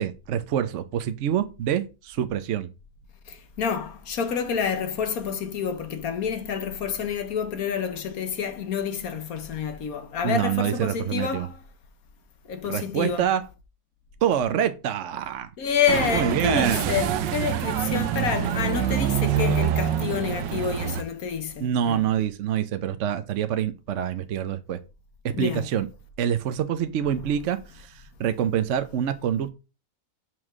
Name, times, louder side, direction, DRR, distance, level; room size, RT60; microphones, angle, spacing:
voice 1, 0.0-2.7 10.2-11.5 12.6-13.4 14.2-15.5 16.1-17.0 21.6-24.8 25.4-25.9 26.2-29.5, right 9 dB, 60° right, 0.8 m, -26 dB
voice 2, 3.3-11.6 12.5-13.3 15.6-22.1 25.3-25.7 27.1-27.2, left 7 dB, 60° left, 1.3 m, -28 dB
sound 1, 15.9-21.0, right 9 dB, 90° right, 1.4 m, -25 dB
5.6 x 4.8 x 6.2 m
omnidirectional pair, 1.9 m